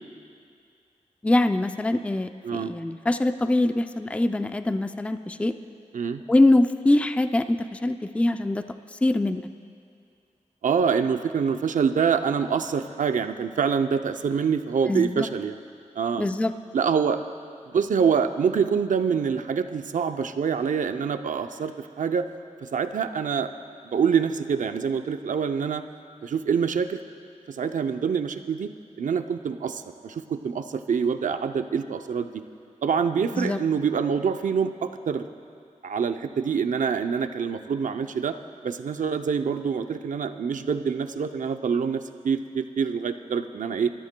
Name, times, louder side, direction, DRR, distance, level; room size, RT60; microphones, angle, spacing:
voice 1, 1.2-5.5 6.3-9.5 14.9-15.3 16.1-16.5 33.3-33.6, left 2 dB, 10° left, 9 dB, 0.4 m, -23 dB
voice 2, 10.6-15.6 16.0-16.3 16.7-17.2 17.7-22.3 22.6-23.5 23.8-25.8 26.2-27.0 27.5-28.7 29.0-32.4 32.8-35.3 35.8-38.4 38.6-43.9, right 6 dB, 90° right, 8 dB, 0.6 m, -25 dB
26.0 x 13.5 x 2.2 m, 2.3 s
wide cardioid pair, 105°, 13 cm